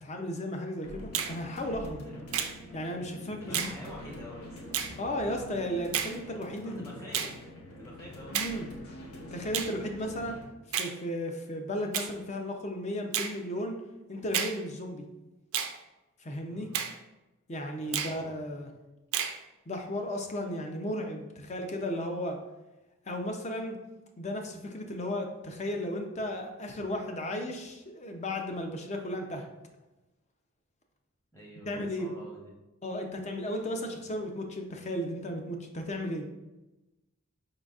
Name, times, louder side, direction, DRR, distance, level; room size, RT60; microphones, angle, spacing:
voice 1, 0.0-2.0 2.7-3.7 5.0-6.9 8.3-8.7 9.3-10.4 10.7-13.8 14.1-15.0 16.2-16.7 17.5-18.7 19.7-22.4 23.1-23.8 24.2-29.5 31.7-32.2 32.8-36.3, left 1 dB, 30° left, 3 dB, 0.5 m, -35 dB
sound 1, 0.8-10.4, left 1 dB, 85° left, 0.9 m, -46 dB
Finger snapping, 1.1-1.4 2.3-2.6 3.5-3.8 4.7-4.9 5.9-6.2 7.1-7.4 8.3-8.6 9.5-9.7 10.7-10.9 11.9-12.1 13.1-13.4 14.3-14.6 15.5-15.8 16.7-17.0 17.9-18.2 19.1-19.4, right 9 dB, 65° right, 0.4 m, -31 dB
voice 2, 3.3-5.5 6.6-7.3 7.8-8.4 16.5-16.8 17.8-18.3 31.3-32.5, equal, 15° left, -4 dB, 1.0 m, -47 dB
5.3 x 3.8 x 2.4 m, 1.0 s
head